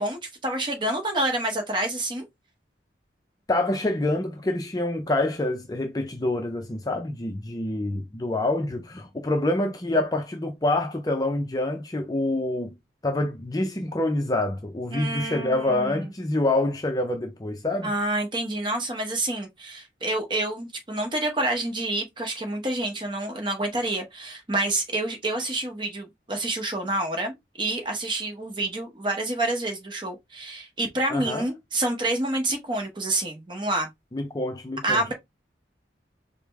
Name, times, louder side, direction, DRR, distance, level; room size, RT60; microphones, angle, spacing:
voice 1, 0.0-2.2 14.9-16.1 17.8-33.9 34.8-35.1, right 2 dB, 25° right, 0.9 m, -28 dB
voice 2, 3.5-12.7 13.0-17.9 31.1-31.5 34.1-35.1, left 2 dB, 20° left, 0.5 m, -26 dB
4.8 x 2.1 x 3.5 m
head